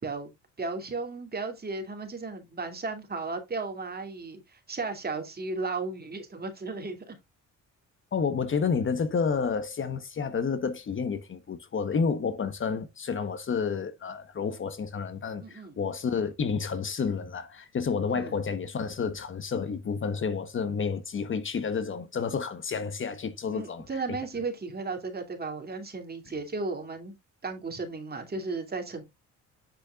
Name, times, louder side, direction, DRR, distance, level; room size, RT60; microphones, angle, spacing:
voice 1, 0.6-7.1 15.4-15.8 18.1-18.4 23.5-27.2 27.4-29.0, right 3 dB, 30° right, 2.5 m, -35 dB
voice 2, 8.1-23.9, left 5 dB, 40° left, 1.1 m, -30 dB
8.2 x 6.7 x 2.4 m
cardioid pair, 90°, 30 cm